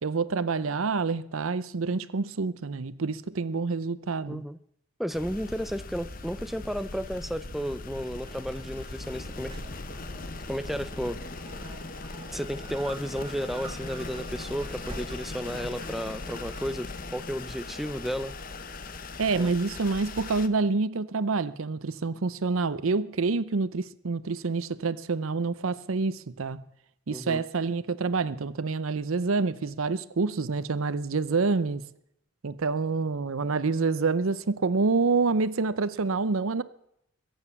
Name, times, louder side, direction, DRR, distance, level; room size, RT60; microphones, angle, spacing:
voice 1, 0.0-4.4 19.2-26.7 27.1-31.9 32.4-36.6, right 4 dB, 80° right, 0.7 m, -27 dB
voice 2, 4.3-4.6 5.0-9.6 10.5-11.2 12.3-18.4 19.3-19.5 27.1-27.4, equal, ahead, 0.5 m, -33 dB
sound 1, 5.1-20.5, left 3 dB, 40° left, 0.9 m, -39 dB
Gull seagull, 8.2-16.7, right 2 dB, 25° right, 1.5 m, -47 dB
21.5 x 8.9 x 7.1 m
head